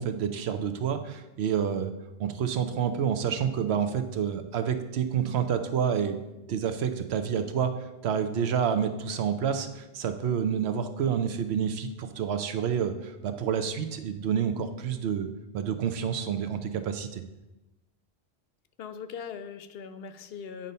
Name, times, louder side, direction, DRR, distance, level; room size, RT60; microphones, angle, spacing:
voice 1, 0.0-1.9 2.2-6.2 6.5-7.7 8.0-15.3 15.5-17.2, right 8 dB, 80° right, 9 dB, 0.9 m, -28 dB
voice 2, 18.8-20.7, left 7 dB, 70° left, 11 dB, 0.8 m, -40 dB
8.7 x 4.0 x 5.4 m, 1.0 s
omnidirectional pair, 1.1 m